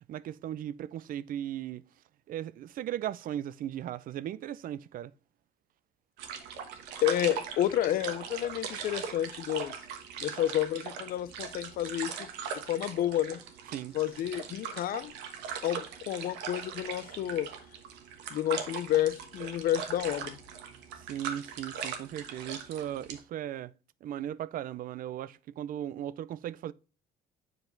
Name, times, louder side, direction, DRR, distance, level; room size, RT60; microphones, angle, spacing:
voice 1, 0.1-1.8 2.3-5.1 13.7-13.9 21.1-23.7 24.0-26.7, right 11 dB, 55° right, 0.5 m, -37 dB
sound 1, 6.2-23.2, right 7 dB, 90° right, 1.2 m, -40 dB
voice 2, 7.0-9.8 10.2-12.3 12.5-13.4 13.9-15.1 15.6-17.5 18.3-20.4, left 12 dB, 60° left, 0.5 m, -30 dB
7.6 x 4.7 x 3.9 m
cardioid pair, 110°, 17 cm